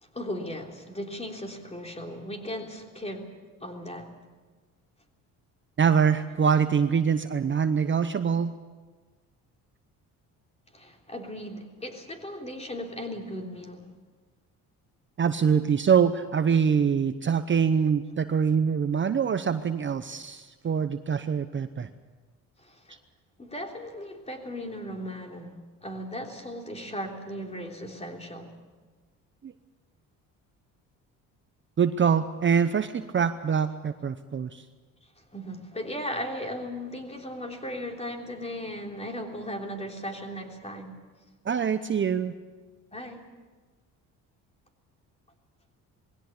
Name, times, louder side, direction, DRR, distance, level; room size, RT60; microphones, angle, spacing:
voice 1, 0.0-3.3 3.6-4.1 10.7-13.9 22.6-23.0 23.4-28.5 35.2-41.0 42.9-43.3, equal, 20° left, 2 dB, 3.4 m, -37 dB
voice 2, 5.8-8.5 15.2-21.9 29.4-29.5 31.8-34.6 41.4-42.3, right 7 dB, 35° right, 10 dB, 0.8 m, -24 dB
20.5 x 16.5 x 8.3 m, 1.3 s
cardioid pair, 90°, 36 cm